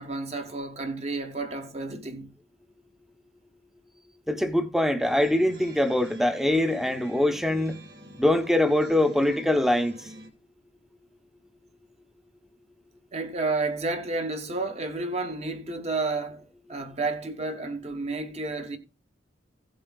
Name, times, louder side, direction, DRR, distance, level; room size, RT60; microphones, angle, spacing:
voice 1, 0.0-2.4 13.1-16.4 16.7-18.8, right 3 dB, 35° right, 1.1 m, -31 dB
voice 2, 4.3-7.8 8.2-10.1, left 1 dB, ahead, 0.7 m, -23 dB
sound 1, 5.0-10.3, right 1 dB, 55° right, 2.2 m, -48 dB
16.5 x 7.6 x 2.3 m
head